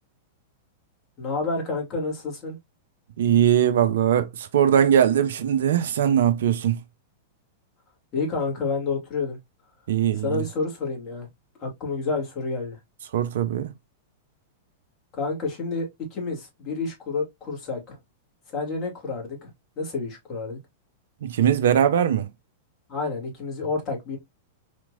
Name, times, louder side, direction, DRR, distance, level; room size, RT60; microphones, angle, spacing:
voice 1, 1.2-2.6 8.1-9.4 10.2-11.3 11.6-12.8 15.1-18.0 18.5-19.5 19.8-20.6 22.9-24.2, left 4 dB, 35° left, 2.2 m, -29 dB
voice 2, 3.2-6.8 9.9-10.4 13.1-13.7 21.2-22.3, right 9 dB, 70° right, 0.5 m, -21 dB
4.3 x 3.0 x 2.4 m
hypercardioid pair, 105°, 0 cm